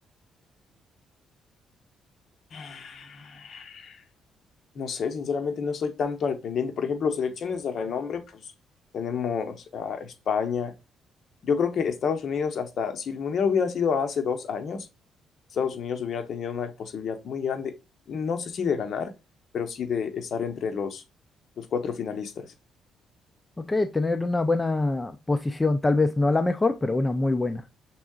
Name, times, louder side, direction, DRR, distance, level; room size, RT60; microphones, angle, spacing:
voice 1, 2.5-4.0 4.7-8.5 8.9-10.7 11.4-14.9 15.5-17.8 18.1-19.1 19.5-21.0 21.6-22.5, left 6 dB, 55° left, 0.9 m, -29 dB
voice 2, 23.6-27.6, left 2 dB, 15° left, 0.4 m, -24 dB
6.0 x 3.6 x 2.3 m
cardioid pair, 110°, 0 cm